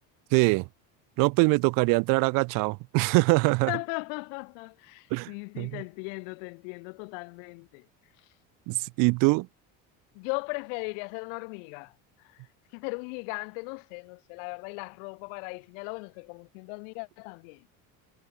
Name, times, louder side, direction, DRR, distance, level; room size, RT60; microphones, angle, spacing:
voice 1, 0.3-0.7 1.2-3.7 5.1-5.8 8.7-9.5, right 28 dB, 65° right, 1.3 m, -23 dB
voice 2, 3.7-7.9 10.1-11.9 12.3-12.4 12.7-17.6, left 40 dB or more, 85° left, 7.6 m, -37 dB
cardioid pair, 165°, 36 cm